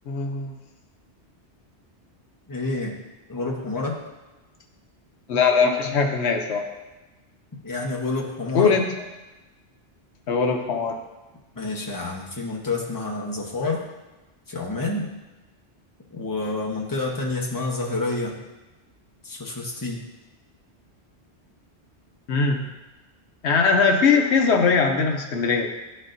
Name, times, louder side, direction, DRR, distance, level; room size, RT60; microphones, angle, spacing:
voice 1, 0.1-0.5 5.3-6.7 8.5-8.8 10.3-11.0 22.3-22.7 23.4-25.7, left 5 dB, 80° left, 3 dB, 1.0 m, -20 dB
voice 2, 2.5-3.0 3.3-4.0 7.6-8.8 11.6-13.8 14.5-15.1 16.1-18.4 19.2-20.0, left 2 dB, 20° left, -2 dB, 0.9 m, -28 dB
11.5 x 4.3 x 2.6 m, 1.1 s
omnidirectional pair, 1.1 m